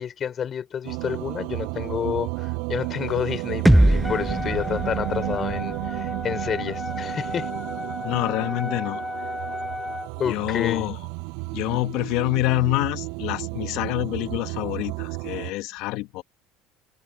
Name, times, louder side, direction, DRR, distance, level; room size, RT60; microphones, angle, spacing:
voice 1, 0.0-7.5 10.2-10.9, left 8 dB, 40° left, 5.4 m, -29 dB
sound 1, 0.8-15.5, right 34 dB, 80° right, 6.3 m, -33 dB
sound 2, 3.7-7.6, right 1 dB, 5° right, 0.5 m, -23 dB
Wind instrument woodwind instrument, 4.0-10.1, left 2 dB, 10° left, 1.5 m, -34 dB
voice 2, 8.0-9.0 10.2-11.0 11.5-16.2, left 20 dB, 70° left, 1.3 m, -26 dB
supercardioid pair, 95°, 0 cm